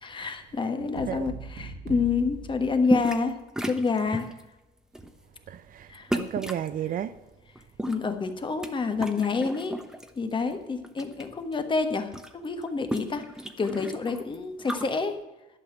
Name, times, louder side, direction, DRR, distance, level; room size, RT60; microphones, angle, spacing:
voice 1, 0.0-4.3 5.9-6.1 7.9-9.8 10.2-13.2 13.6-15.2, left 4 dB, 30° left, 1.4 m, -28 dB
voice 2, 0.9-1.3 5.5-7.1, right 10 dB, 55° right, 0.6 m, -33 dB
sound 1, 1.0-3.5, right 4 dB, 70° right, 2.0 m, -40 dB
sound 2, 2.9-3.3 3.6-4.4 4.9-5.2 6.1-6.7 7.6-8.7 9.0-10.1 10.5-11.2 11.5-11.6 11.8-14.9, right 1 dB, 5° right, 1.0 m, -33 dB
11.5 x 5.7 x 9.0 m
cardioid pair, 110°, 17 cm